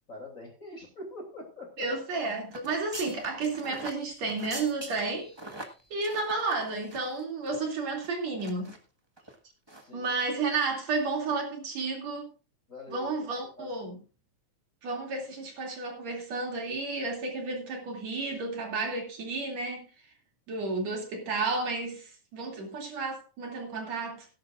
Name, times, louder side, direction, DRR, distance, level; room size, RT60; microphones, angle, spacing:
voice 1, 0.1-1.9 9.7-10.1 12.7-13.3 13.6-13.7, left 1 dB, 25° left, 3.0 m, -44 dB
voice 2, 1.8-5.3 5.6-8.7 9.9-12.3 12.9-14.0 14.8-19.9 20.5-24.3, right 3 dB, 60° right, 3.9 m, -32 dB
sound 1, 2.5-7.2 7.5-7.6 8.0-8.8 9.2-9.3 9.7-9.9 10.1-10.3, right 1 dB, 35° right, 0.4 m, -43 dB
18.0 x 11.5 x 2.5 m
omnidirectional pair, 3.4 m